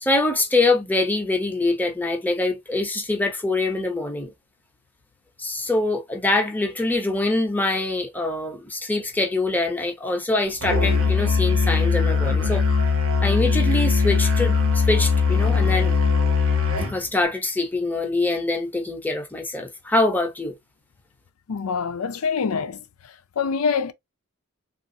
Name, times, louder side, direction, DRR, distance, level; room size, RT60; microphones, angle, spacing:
voice 1, 0.0-4.3 5.4-12.6 13.2-15.9 16.9-20.5, left 2 dB, 10° left, 0.7 m, -24 dB
Musical instrument, 10.6-17.0, left 5 dB, 70° right, 0.9 m, -20 dB
voice 2, 21.5-22.8 23.4-23.9, left 5 dB, 90° left, 0.5 m, -25 dB
3.5 x 2.5 x 2.6 m
head